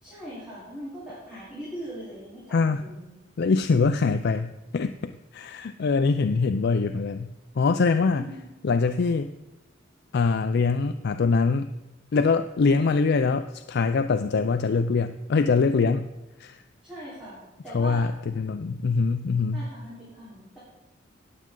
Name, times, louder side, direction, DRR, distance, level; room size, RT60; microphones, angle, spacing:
voice 1, 0.0-3.1 8.2-8.5 12.6-12.8 16.8-18.1 19.5-20.6, right 1 dB, 5° right, -11 dB, 4.0 m, -40 dB
voice 2, 2.5-2.8 3.4-8.3 8.6-9.3 10.1-11.7 12.1-16.1 16.4-16.6 17.7-19.6, left 4 dB, 60° left, 9 dB, 0.4 m, -23 dB
18.5 x 7.5 x 3.8 m, 1.0 s
head